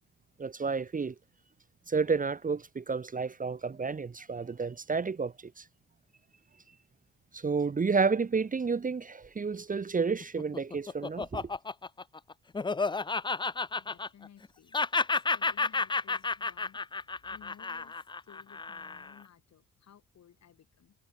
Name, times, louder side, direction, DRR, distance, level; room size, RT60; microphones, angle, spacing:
voice 1, 0.4-1.1 1.9-5.7 7.3-11.5, right 5 dB, 25° right, 1.1 m, -31 dB
Laughter, 10.2-14.5 14.7-19.2, left 4 dB, 15° left, 0.6 m, -31 dB
voice 2, 13.8-14.8 15.1-21.0, left 9 dB, 60° left, 6.2 m, -58 dB
cardioid pair, 90°, 30 cm